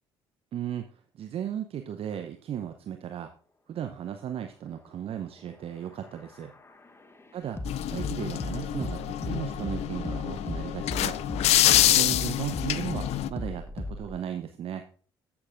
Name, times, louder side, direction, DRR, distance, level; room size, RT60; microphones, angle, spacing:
voice 1, 0.5-3.3 3.7-6.5 7.3-7.6 7.9-11.2 11.7-14.9, right 9 dB, 45° right, 7 dB, 0.8 m, -36 dB
sound 1, 5.5-14.2, left 2 dB, 20° left, 1.0 m, -38 dB
sound 2, 7.7-13.3, left 13 dB, 55° left, 0.5 m, -26 dB
15.0 x 7.1 x 2.5 m, 0.42 s
figure-of-eight pair, 50°, 13 cm